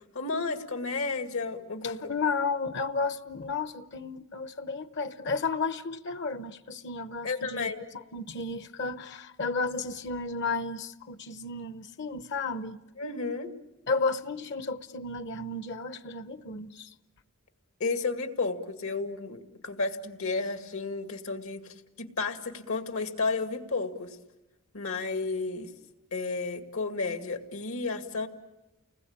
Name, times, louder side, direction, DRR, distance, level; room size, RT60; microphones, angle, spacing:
voice 1, 0.1-2.0 7.2-7.8 13.0-13.5 17.8-24.1 24.7-25.7 26.1-28.3, left 3 dB, 80° left, 2.2 m, -32 dB
voice 2, 1.8-12.8 13.9-16.9, left 4 dB, 55° left, 0.9 m, -33 dB
30.0 x 20.5 x 8.8 m
head